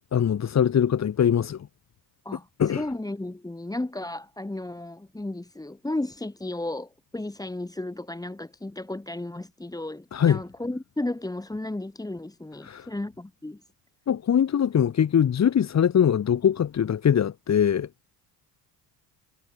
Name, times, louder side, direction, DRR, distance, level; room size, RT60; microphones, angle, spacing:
voice 1, 0.1-1.7 2.6-2.8 10.1-10.4 12.6-12.9 14.1-18.1, left 8 dB, 40° left, 1.9 m, -22 dB
voice 2, 2.2-13.6, left 2 dB, 10° left, 2.7 m, -34 dB
supercardioid pair, 90°, 41 cm